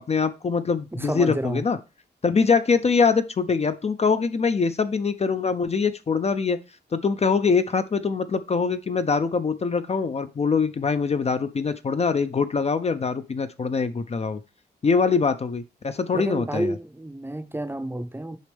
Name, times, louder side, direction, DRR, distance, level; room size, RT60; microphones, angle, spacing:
voice 1, 0.0-1.8 2.2-6.6 6.9-14.4 14.8-16.7, left 5 dB, 35° left, 0.4 m, -23 dB
voice 2, 0.9-1.6 16.1-18.4, right 1 dB, 10° right, 0.6 m, -29 dB
6.4 x 5.1 x 3.3 m
wide cardioid pair, 130°, 18 cm